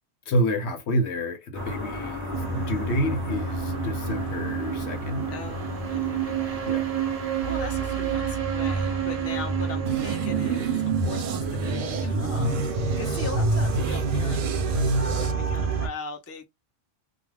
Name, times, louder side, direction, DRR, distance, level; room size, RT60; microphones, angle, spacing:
voice 1, 0.3-5.3 6.6-6.9, equal, 65° left, 0.9 m, -28 dB
sound 1, 1.5-8.2, left 1 dB, 15° right, 0.9 m, -37 dB
sound 2, 2.3-15.9, right 6 dB, 45° right, 0.5 m, -29 dB
voice 2, 5.3-6.6 6.9-12.7 13.0-16.4, left 3 dB, 25° left, 0.3 m, -39 dB
sound 3, 9.9-15.3, right 2 dB, 85° right, 1.0 m, -27 dB
2.4 x 2.3 x 3.1 m
omnidirectional pair, 1.3 m